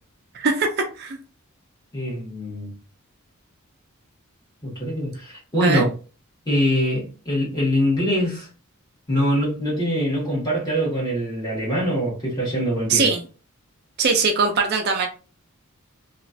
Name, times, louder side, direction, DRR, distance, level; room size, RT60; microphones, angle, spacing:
voice 1, 0.3-1.2 5.6-5.8 12.9-13.3 14.0-15.1, right 4 dB, 50° right, 0.4 m, -21 dB
voice 2, 1.9-2.7 4.6-5.9 6.5-8.5 9.1-13.1, equal, 20° left, 1.5 m, -23 dB
2.9 x 2.4 x 2.6 m
head